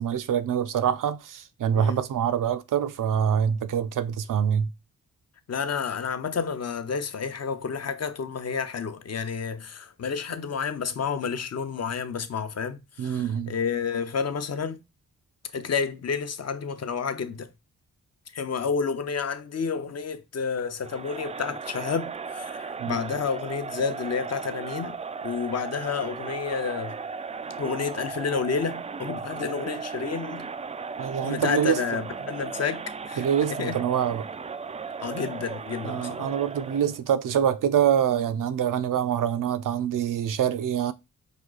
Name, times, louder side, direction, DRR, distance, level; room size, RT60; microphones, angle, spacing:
voice 1, 0.0-4.7 13.0-13.5 22.8-23.0 31.0-31.8 33.2-34.3 35.8-40.9, right 9 dB, 60° right, 0.6 m, -25 dB
voice 2, 5.5-14.8 15.5-17.5 18.3-27.0 27.6-30.5 31.2-33.9 35.0-36.3, left 6 dB, 45° left, 0.8 m, -30 dB
Crowd, 20.8-37.0, right 5 dB, 20° right, 0.3 m, -36 dB
5.1 x 2.3 x 3.9 m
supercardioid pair, 45°, 36 cm